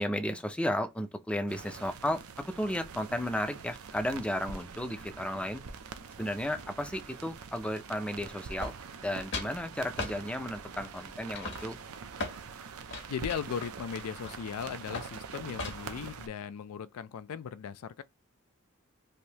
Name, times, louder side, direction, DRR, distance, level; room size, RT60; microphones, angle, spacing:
voice 1, 0.0-5.6 6.2-11.8, left 1 dB, 5° left, 0.4 m, -34 dB
sound 1, 1.5-16.3, right 5 dB, 80° right, 0.5 m, -45 dB
sound 2, 8.6-9.1 9.3-9.6 10.0-10.2 10.8-11.1 11.4-12.4 12.9-14.5 14.9-15.2 15.6-16.0, left 3 dB, 55° left, 1.0 m, -38 dB
voice 2, 13.1-18.0, left 7 dB, 80° left, 0.4 m, -37 dB
3.3 x 2.6 x 2.8 m
head